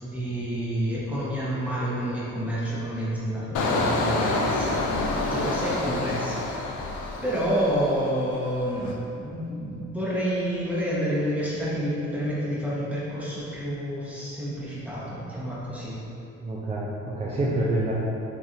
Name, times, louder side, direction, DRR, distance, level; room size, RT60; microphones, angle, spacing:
voice 1, 0.0-4.8 5.3-6.8 7.2-16.0, equal, 5° right, -8 dB, 1.0 m, -29 dB
Engine, 3.5-8.2 8.6-8.9, left 2 dB, 80° left, 0.5 m, -27 dB
voice 2, 16.4-17.9, right 1 dB, 20° right, -6 dB, 0.4 m, -27 dB
4.3 x 2.6 x 2.5 m, 2.7 s
cardioid pair, 90°, 30 cm